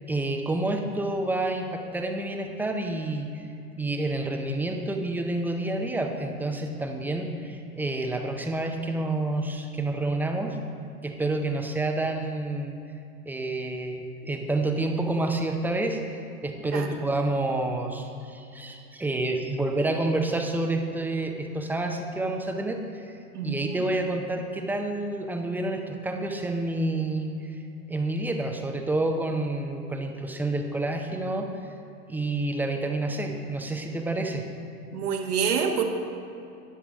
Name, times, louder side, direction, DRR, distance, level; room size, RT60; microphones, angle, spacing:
voice 1, 0.1-3.5 3.8-10.6 11.0-12.8 13.3-27.6 27.9-31.5 32.1-34.4, right 2 dB, 5° right, 4 dB, 0.6 m, -29 dB
voice 2, 23.3-23.8 34.9-35.8, right 7 dB, 70° right, 3 dB, 1.6 m, -27 dB
12.5 x 9.5 x 3.5 m, 2.7 s
hypercardioid pair, 100°, 47 cm